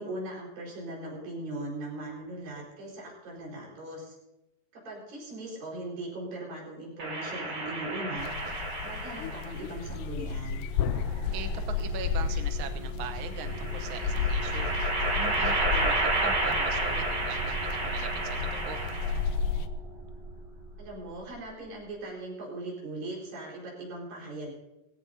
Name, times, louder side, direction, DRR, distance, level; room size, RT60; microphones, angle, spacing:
voice 1, 0.0-4.2 4.7-8.3 8.8-10.6 20.8-24.5, right 1 dB, 85° right, -3 dB, 6.5 m, -39 dB
sound 1, 7.0-9.6 10.8-11.8 13.4-19.4, right 2 dB, 50° right, 4.3 m, -31 dB
sound 2, 8.2-19.7, left 7 dB, 80° left, 2.1 m, -33 dB
sound 3, 9.6-21.9, equal, 15° left, 2.5 m, -39 dB
voice 2, 11.3-14.7 15.1-18.8, right 8 dB, 70° right, 6 dB, 1.2 m, -40 dB
19.0 x 16.5 x 2.8 m, 0.93 s
omnidirectional pair, 3.9 m